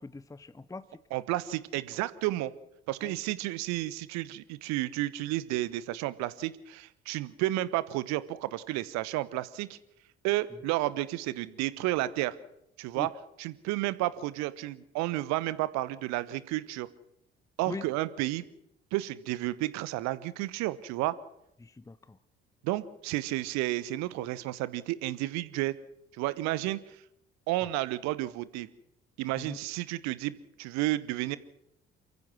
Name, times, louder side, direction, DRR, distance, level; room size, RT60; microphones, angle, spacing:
voice 1, 0.0-1.0 3.0-3.2 12.9-13.1 17.7-17.9 21.6-22.2 29.4-29.6, left 3 dB, 10° left, 16 dB, 0.8 m, -42 dB
voice 2, 1.1-2.5 2.9-9.8 10.2-12.3 12.8-13.1 13.4-16.9 17.6-18.5 18.9-21.1 22.6-25.8 26.1-26.8 27.5-28.7 29.2-31.4, right 16 dB, 60° right, 17 dB, 1.1 m, -31 dB
28.0 x 15.0 x 6.2 m, 0.77 s
figure-of-eight pair, 45°, 31 cm